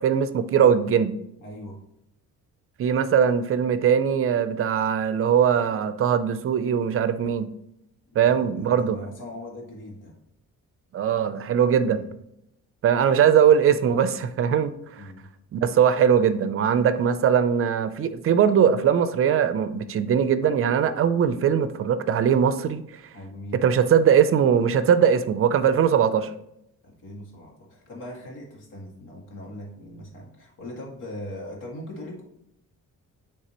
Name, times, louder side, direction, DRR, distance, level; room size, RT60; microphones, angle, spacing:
voice 1, 0.0-1.2 2.8-7.5 8.2-9.0 10.9-12.0 12.8-15.0 15.5-23.0 23.5-26.3, right 8 dB, 45° right, 12 dB, 0.5 m, -21 dB
voice 2, 1.4-1.8 8.2-10.1 11.8-12.1 15.0-15.3 23.1-23.8 26.8-32.2, left 1 dB, 90° left, -2 dB, 2.0 m, -40 dB
9.7 x 3.3 x 2.9 m, 0.80 s
cardioid pair, 145°, 30 cm